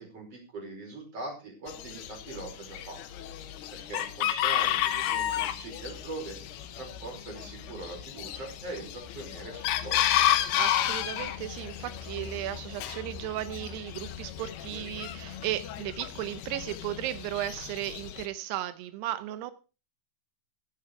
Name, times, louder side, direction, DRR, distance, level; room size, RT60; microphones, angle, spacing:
voice 1, 0.0-3.0 3.7-6.4 6.8-10.0, right 2 dB, 35° right, 1 dB, 6.0 m, -41 dB
Chicken rooster, 1.7-18.3, left 12 dB, 80° left, 3.0 m, -32 dB
voice 2, 10.6-19.5, right 13 dB, 90° right, 11 dB, 2.9 m, -35 dB
16.0 x 8.9 x 4.8 m, 0.33 s
omnidirectional pair, 4.6 m